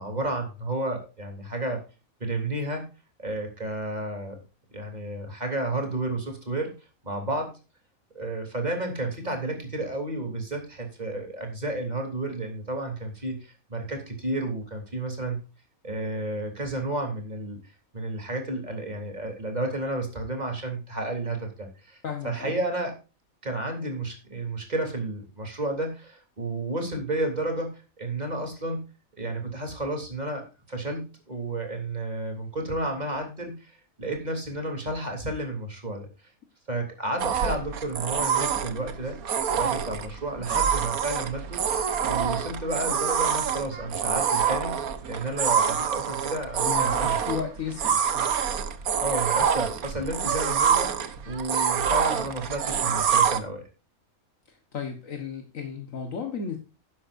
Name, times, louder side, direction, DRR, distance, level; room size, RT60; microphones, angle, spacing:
voice 1, 0.0-1.8 2.2-2.9 3.2-4.4 4.7-6.7 7.0-7.5 8.2-15.4 15.8-17.6 17.9-22.0 22.2-22.9 23.4-28.8 29.2-36.1 36.7-39.2 39.5-41.6 42.0-44.8 45.1-47.3 49.0-53.6, right 2 dB, 30° right, 3 dB, 3.5 m, -31 dB
voice 2, 22.0-22.6 46.7-48.3 54.5-56.6, left 6 dB, 65° left, 4 dB, 1.8 m, -34 dB
sound 1, 37.2-53.4, right 7 dB, 90° right, 1.5 m, -26 dB
11.5 x 11.0 x 2.6 m, 0.31 s
omnidirectional pair, 1.5 m